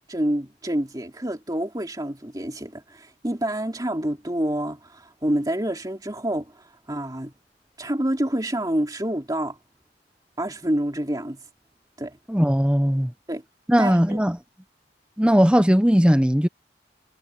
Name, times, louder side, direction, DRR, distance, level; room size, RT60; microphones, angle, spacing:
voice 1, 0.1-7.3 7.8-9.6 10.4-11.4 12.0-12.2 13.3-13.4 13.8-14.2, right 1 dB, 20° right, 2.7 m, -27 dB
voice 2, 12.3-13.1 13.7-14.4 15.2-16.5, equal, 5° right, 0.9 m, -18 dB
head